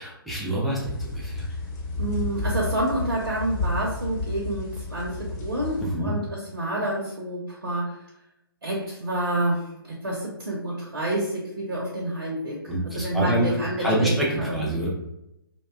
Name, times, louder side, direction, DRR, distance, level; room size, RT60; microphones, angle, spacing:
voice 1, 0.0-1.5 5.8-6.1 12.7-14.9, equal, ahead, -6 dB, 0.4 m, -26 dB
sound 1, 0.8-5.8, left 2 dB, 40° left, 0.8 m, -31 dB
voice 2, 2.0-8.0 8.6-12.6 12.9-14.7, right 1 dB, 70° right, -3 dB, 0.7 m, -28 dB
2.5 x 2.2 x 2.3 m, 0.84 s
figure-of-eight pair, 130°, 13 cm